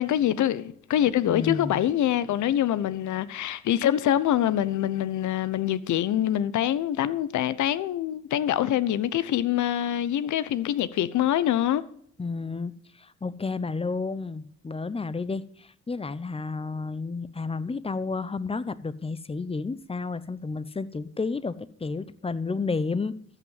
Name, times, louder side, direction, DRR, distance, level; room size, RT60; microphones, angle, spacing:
voice 1, 0.0-11.8, left 11 dB, 75° left, 0.9 m, -25 dB
voice 2, 1.3-1.9 12.2-23.1, left 4 dB, 20° left, 0.8 m, -31 dB
14.0 x 6.0 x 7.2 m
cardioid pair, 90°, 30 cm